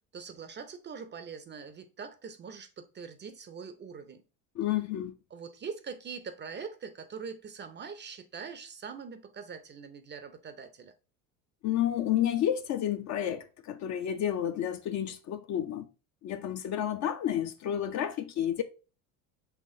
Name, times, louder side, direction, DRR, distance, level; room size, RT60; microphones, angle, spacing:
voice 1, 0.1-4.2 5.3-10.9, right 6 dB, 25° right, 0.5 m, -43 dB
voice 2, 4.6-5.1 11.6-15.9 16.2-18.6, left 10 dB, 40° left, 0.4 m, -30 dB
5.7 x 2.9 x 2.6 m
hypercardioid pair, 75°, 46 cm